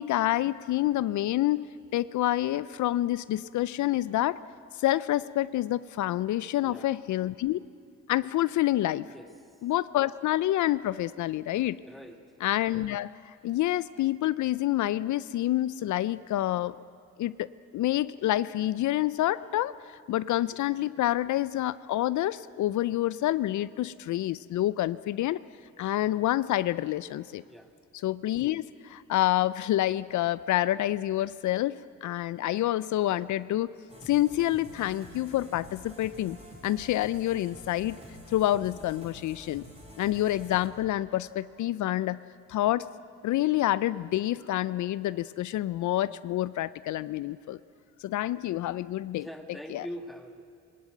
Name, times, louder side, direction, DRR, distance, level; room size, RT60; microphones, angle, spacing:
voice 1, 0.0-1.7 1.9-4.4 4.7-7.6 8.1-9.1 9.6-11.8 12.4-16.7 17.2-17.5 17.7-25.4 25.8-27.4 27.9-33.7 34.0-36.4 36.6-38.0 38.3-39.6 40.0-42.2 42.5-42.9 43.2-47.6 48.0-49.9, left 14 dB, 75° left, 17 dB, 0.5 m, -28 dB
voice 2, 6.6-6.9 9.1-9.3 11.8-12.2 27.4-27.7 49.1-50.4, equal, ahead, 5 dB, 1.7 m, -43 dB
sound 1, 33.9-40.7, equal, 20° right, 6.4 m, -48 dB
20.5 x 19.5 x 9.1 m, 2.3 s
cardioid pair, 120°, 30 cm